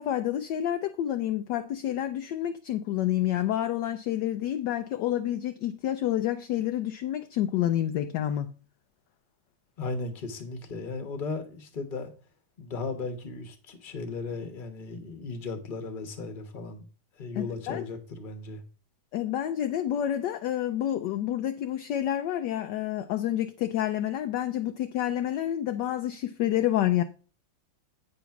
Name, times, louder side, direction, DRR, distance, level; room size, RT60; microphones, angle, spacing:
voice 1, 0.0-8.5 17.4-17.8 19.1-27.0, left 12 dB, 75° left, 1.0 m, -29 dB
voice 2, 9.8-12.1 12.6-16.8 17.2-18.6, left 3 dB, 30° left, 1.0 m, -36 dB
8.6 x 4.0 x 5.8 m
omnidirectional pair, 2.3 m